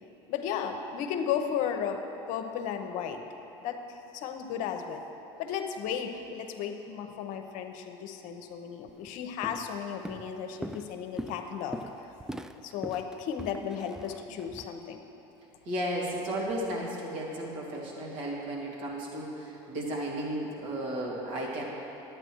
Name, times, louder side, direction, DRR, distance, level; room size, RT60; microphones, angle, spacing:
voice 1, 0.3-2.0 2.3-3.2 3.6-5.0 5.4-11.8 12.5-15.0, left 8 dB, 60° left, 5 dB, 0.9 m, -34 dB
Walk footsteps, 8.9-9.1 9.4-9.8 10.1-14.7, right 1 dB, 5° right, 0.3 m, -41 dB
voice 2, 15.7-21.6, right 1 dB, 65° right, -3 dB, 2.5 m, -34 dB
11.0 x 8.7 x 4.5 m, 3.0 s
hypercardioid pair, 90°, 15 cm